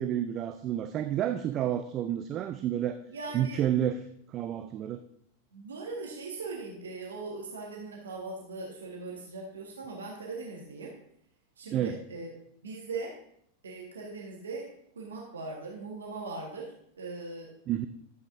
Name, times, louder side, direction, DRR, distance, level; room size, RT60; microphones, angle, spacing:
voice 1, 0.0-3.0 3.3-4.0 4.3-5.0 11.7-12.0 17.7-17.9, right 10 dB, 35° right, 9 dB, 0.5 m, -30 dB
voice 2, 3.1-3.6 5.5-10.9 11.6-12.3 12.6-13.1 13.6-14.7 14.9-17.5, right 3 dB, 70° right, -1 dB, 1.5 m, -40 dB
12.0 x 7.9 x 2.6 m, 0.69 s
figure-of-eight pair, 90°, 0 cm